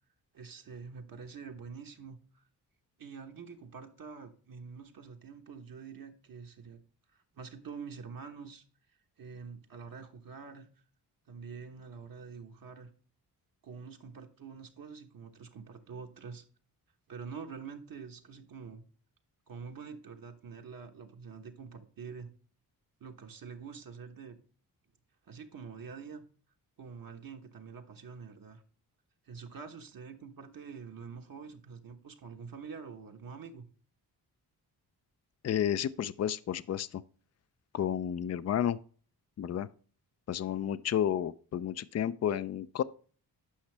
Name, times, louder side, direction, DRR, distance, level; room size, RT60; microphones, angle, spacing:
voice 1, 0.3-2.4 3.0-6.8 7.3-8.6 9.2-10.7 11.3-12.9 13.6-16.4 17.1-18.8 19.5-22.3 23.0-24.4 25.3-26.2 26.8-28.6 29.2-33.7, right 5 dB, 55° right, 1.2 m, -46 dB
voice 2, 35.4-37.0 37.7-38.8 39.4-39.7 40.3-42.8, left 10 dB, 40° left, 0.5 m, -31 dB
10.0 x 5.7 x 3.3 m
cardioid pair, 75°, 40 cm